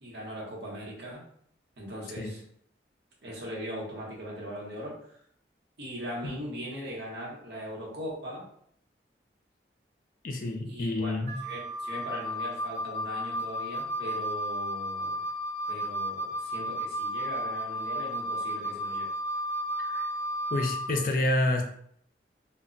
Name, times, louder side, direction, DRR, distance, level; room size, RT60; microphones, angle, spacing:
voice 1, 0.0-1.2 1.8-2.4 3.2-5.2 5.8-8.4 10.7-15.2 15.7-19.1, equal, 70° right, -3 dB, 0.9 m, -40 dB
voice 2, 10.2-11.4 19.8-20.1 20.5-21.6, left 2 dB, 50° left, 2 dB, 0.4 m, -28 dB
Wind instrument woodwind instrument, 11.3-20.9, equal, 40° right, 0.4 m, -33 dB
2.1 x 2.1 x 3.7 m, 0.66 s
head